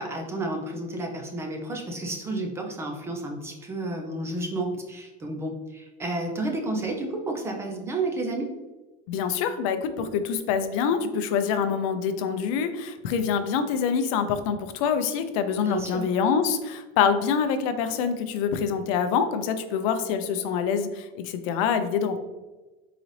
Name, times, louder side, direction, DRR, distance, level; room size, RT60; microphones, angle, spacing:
voice 1, 0.0-8.5 15.6-16.1, right 2 dB, 15° right, 2 dB, 0.4 m, -31 dB
voice 2, 9.1-22.2, left 6 dB, 65° left, 9 dB, 0.5 m, -25 dB
3.9 x 3.9 x 3.1 m, 1.2 s
cardioid pair, 165°, 18 cm